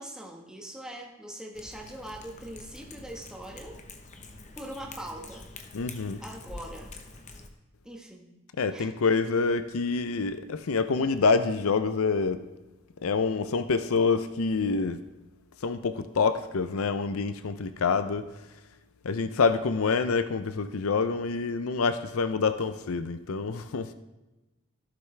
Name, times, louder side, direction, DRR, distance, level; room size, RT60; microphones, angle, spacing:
voice 1, 0.0-3.8 4.5-5.4 6.2-6.9 7.8-8.3 8.7-8.9, right 1 dB, 5° right, 0 dB, 1.3 m, -42 dB
Cat, 1.5-7.5, left 3 dB, 30° left, 0.9 m, -46 dB
voice 2, 5.7-6.2 8.6-12.4 13.0-15.0 15.6-18.3 19.0-23.9, left 4 dB, 75° left, 11 dB, 0.5 m, -26 dB
13.5 x 12.0 x 3.3 m, 1.1 s
head